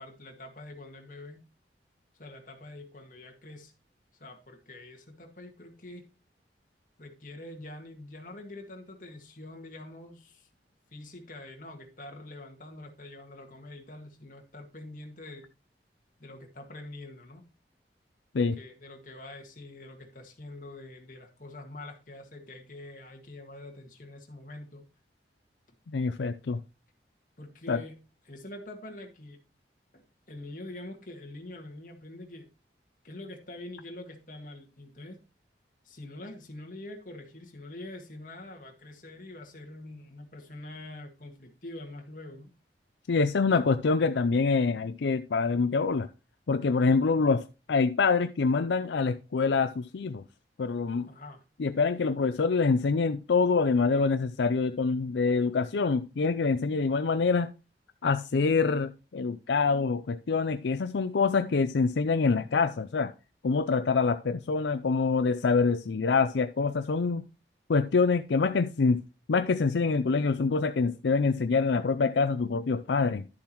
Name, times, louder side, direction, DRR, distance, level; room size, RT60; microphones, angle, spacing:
voice 1, 0.0-1.5 2.2-3.7 4.2-6.1 7.0-10.5 10.9-15.5 16.2-17.4 18.4-24.9 27.4-29.4 29.9-32.5 33.0-35.2 35.8-42.5 51.1-51.4, left 2 dB, 50° left, 1.8 m, -45 dB
voice 2, 25.9-26.6 27.7-27.8 43.1-46.1 46.5-50.2 50.6-51.1 51.6-57.5 58.0-63.1 63.4-67.2 67.7-69.0 69.3-73.3, left 4 dB, 90° left, 0.5 m, -25 dB
11.5 x 7.1 x 3.0 m
head